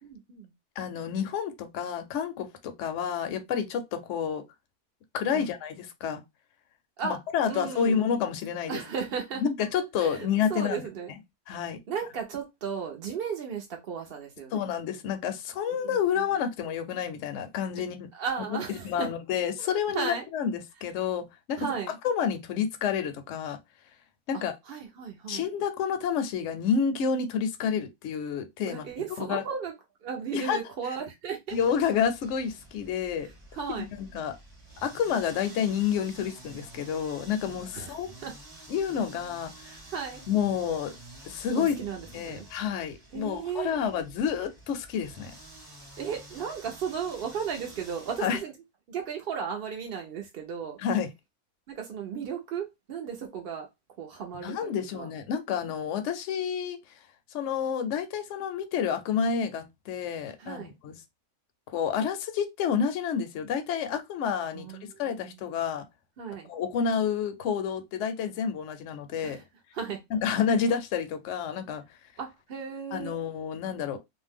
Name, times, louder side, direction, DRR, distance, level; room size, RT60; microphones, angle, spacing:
voice 1, 0.0-0.5 5.3-5.5 7.0-7.2 7.5-8.1 8.7-9.4 10.0-11.1 11.9-14.6 15.7-16.0 18.1-19.1 19.6-20.2 21.6-21.9 24.7-25.5 28.6-29.7 30.0-31.6 33.5-33.9 37.7-37.9 38.2-38.3 39.7-40.2 41.5-42.5 43.1-43.7 46.0-48.5 48.9-50.8 51.7-53.7 54.0-55.1 60.4-60.7 64.5-65.4 66.2-66.5 69.2-69.4 69.7-70.0 72.2-73.1, right 6 dB, 60° right, 0.6 m, -35 dB
voice 2, 0.8-4.4 5.1-6.2 7.0-8.8 9.4-10.8 11.5-11.8 14.5-18.1 18.5-18.6 18.8-21.7 22.0-23.6 24.3-24.5 25.3-28.8 29.2-29.4 30.3-30.6 31.5-33.3 33.8-34.4 34.8-38.1 38.7-39.5 40.3-40.9 41.2-41.7 42.1-45.3 48.2-48.4 50.8-51.1 54.4-56.8 57.3-61.0 61.7-65.9 66.5-69.4 70.1-72.0 72.9-74.0, left 7 dB, 65° left, 0.8 m, -29 dB
sound 1, 31.5-48.4, right 1 dB, 20° right, 0.8 m, -49 dB
2.6 x 2.1 x 3.4 m
omnidirectional pair, 1.6 m